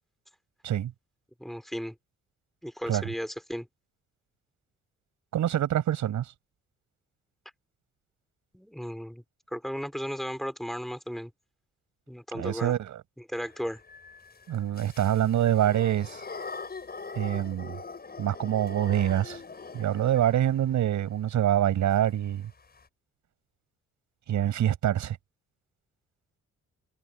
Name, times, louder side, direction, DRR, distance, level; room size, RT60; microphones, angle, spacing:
voice 1, 1.4-2.0 2.6-3.7 8.5-9.2 9.5-11.3 12.1-12.8 13.3-13.8, equal, ahead, 4.4 m, -35 dB
voice 2, 5.3-6.3 12.3-13.0 14.5-16.2 17.2-17.8 18.2-19.4 19.7-22.5 24.3-25.2, right 11 dB, 70° right, 7.5 m, -25 dB
sound 1, 13.3-20.7 22.3-22.4 22.6-22.8, left 4 dB, 30° left, 6.6 m, -42 dB
cardioid pair, 90°, 30 cm